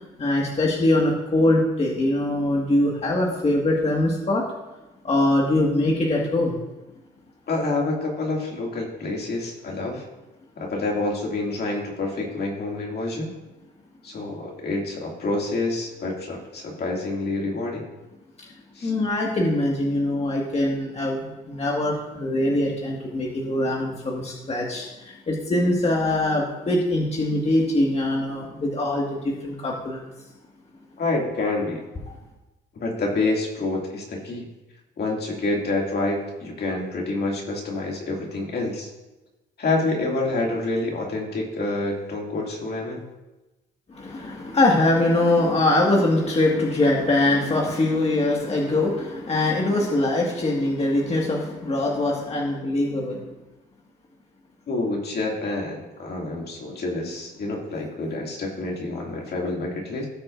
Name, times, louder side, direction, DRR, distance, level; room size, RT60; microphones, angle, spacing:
voice 1, 0.2-4.4 5.0-6.5 18.8-30.1 43.9-53.2, left 1 dB, 30° left, -2 dB, 1.7 m, -22 dB
voice 2, 7.5-10.0 10.6-13.3 14.0-17.8 18.8-18.9 31.0-31.8 32.8-34.4 35.0-38.9 39.6-43.0 54.7-60.1, left 2 dB, 55° left, -1 dB, 2.3 m, -27 dB
17.0 x 6.0 x 2.5 m, 1.0 s
cardioid pair, 90°, 20 cm